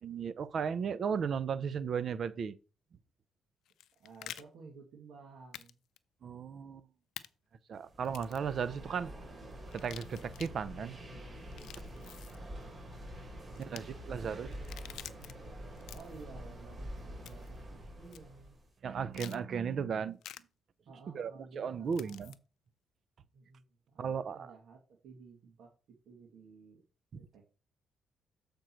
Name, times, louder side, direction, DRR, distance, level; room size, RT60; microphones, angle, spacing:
voice 1, 0.0-2.5 6.2-6.8 7.7-9.1 9.7-11.0 13.6-14.5 18.8-20.2 21.1-22.3 24.0-24.5, right 6 dB, 55° right, 0.6 m, -35 dB
sound 1, 3.7-4.4 5.5-5.7 6.0-6.1 7.2-7.3 8.0-8.5 9.7-10.5 11.4-12.4 13.6-13.8 14.5-15.3 15.8-16.2 17.3-17.6 18.1-18.2 19.1-19.4 20.2-20.4 21.9-22.4, left 12 dB, 80° left, 0.5 m, -48 dB
voice 2, 4.0-5.8 13.5-15.2 15.9-18.6 20.9-22.3 23.3-26.8 27.1-27.5, right 4 dB, 70° right, 1.9 m, -54 dB
sound 2, 7.8-18.7, equal, 35° right, 3.7 m, -47 dB
7.5 x 5.2 x 4.4 m
cardioid pair, 90°, 0 cm